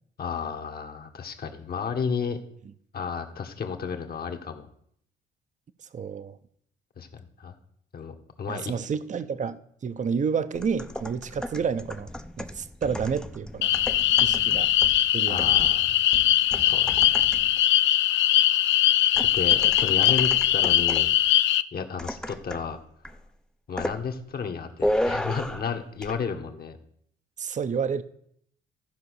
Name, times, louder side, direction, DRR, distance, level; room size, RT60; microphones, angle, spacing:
voice 1, 0.2-2.4 2.9-4.7 7.0-7.6 7.9-8.7 15.3-16.1 16.5-17.2 19.3-21.1 21.7-22.8 23.7-26.8, left 6 dB, 50° left, 1.5 m, -33 dB
voice 2, 5.9-6.4 8.5-12.1 12.4-13.7 14.2-14.7 15.1-15.4 27.4-28.0, right 6 dB, 40° right, 0.7 m, -30 dB
sound 1, 10.5-17.6 19.2-21.2 22.0-22.7 23.0-23.3 23.8-24.0 24.8-25.7 26.0-26.2, equal, 5° left, 0.6 m, -34 dB
sound 2, 13.6-21.6, left 12 dB, 70° left, 0.4 m, -21 dB
14.0 x 5.0 x 6.5 m
cardioid pair, 90°, 20 cm